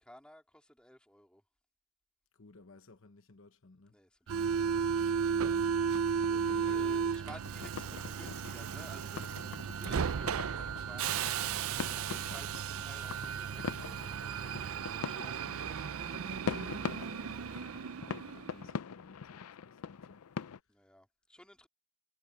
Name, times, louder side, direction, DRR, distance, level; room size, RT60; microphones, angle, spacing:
voice 1, 0.0-1.4 3.9-5.3 6.3-11.5 11.7-17.1 20.7-21.7, equal, 5° left, 2.7 m, -56 dB
voice 2, 2.3-4.0 5.3-5.7 6.4-7.1 11.3-11.7 15.3-15.7 17.6-20.2, left 3 dB, 65° left, 1.0 m, -57 dB
Subway metro underground, 4.3-18.6, right 7 dB, 75° right, 0.5 m, -34 dB
sound 1, 5.9-20.6, left 6 dB, 90° left, 0.5 m, -44 dB
head